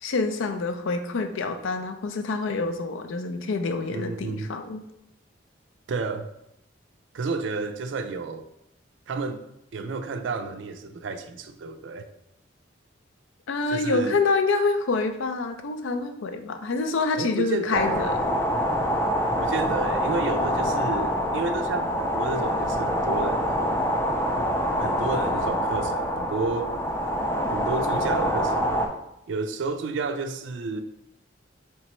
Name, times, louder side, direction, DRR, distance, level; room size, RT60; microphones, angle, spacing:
voice 1, 0.0-4.8 13.5-18.2, left 3 dB, 80° left, 0.4 m, -26 dB
voice 2, 3.9-4.5 5.9-6.3 7.1-8.4 9.1-9.4 9.7-12.1 13.7-14.2 17.2-18.1 19.4-23.6 24.8-26.8 27.5-28.8 29.3-30.8, right 3 dB, 70° right, 0.4 m, -31 dB
sound 1, 17.7-28.9, equal, 15° left, 0.3 m, -25 dB
3.4 x 3.0 x 4.3 m
head